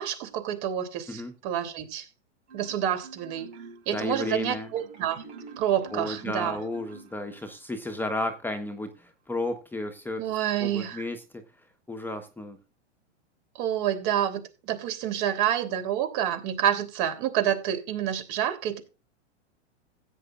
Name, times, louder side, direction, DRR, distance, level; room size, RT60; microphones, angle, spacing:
voice 1, 0.0-2.0 2.5-3.5 3.8-5.2 5.6-6.6 10.2-11.0 13.6-18.8, right 10 dB, 50° right, 3.3 m, -28 dB
Marimba xylophone, 2.5-7.6, right 4 dB, 75° right, 5.2 m, -47 dB
voice 2, 3.9-4.7 5.9-10.3 10.6-11.4 11.9-12.6, left 2 dB, 5° left, 1.2 m, -33 dB
16.0 x 9.1 x 2.5 m
hypercardioid pair, 110°, 35 cm